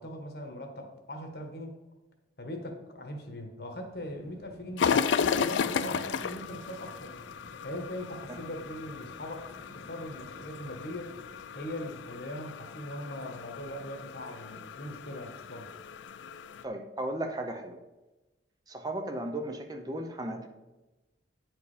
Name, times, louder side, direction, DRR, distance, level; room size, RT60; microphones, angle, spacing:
voice 1, 0.0-1.8 2.4-4.9 5.2-7.1 7.6-11.1 11.5-15.7, left 1 dB, 55° left, 4 dB, 1.3 m, -40 dB
sound 1, 3.9-12.1, equal, 55° right, 1.5 m, -55 dB
sound 2, 4.8-16.6, left 6 dB, 85° left, 0.4 m, -34 dB
voice 2, 16.6-17.8 18.7-20.5, right 1 dB, 20° right, 5 dB, 0.6 m, -35 dB
9.6 x 4.7 x 4.9 m, 1.1 s
head